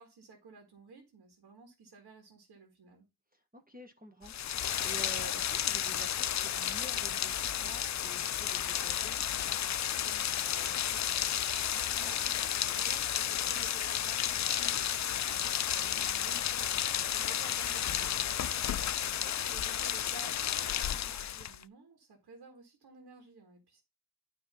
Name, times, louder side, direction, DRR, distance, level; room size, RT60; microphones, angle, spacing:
voice 1, 0.0-3.1 12.0-23.8, right 4 dB, 85° right, 1.7 m, -54 dB
voice 2, 3.3-11.1 15.8-16.0 18.7-18.9, right 2 dB, 25° right, 1.4 m, -51 dB
Rain, 4.2-21.6, left 10 dB, 50° left, 0.5 m, -32 dB
9.2 x 3.3 x 5.5 m
cardioid pair, 45°, 38 cm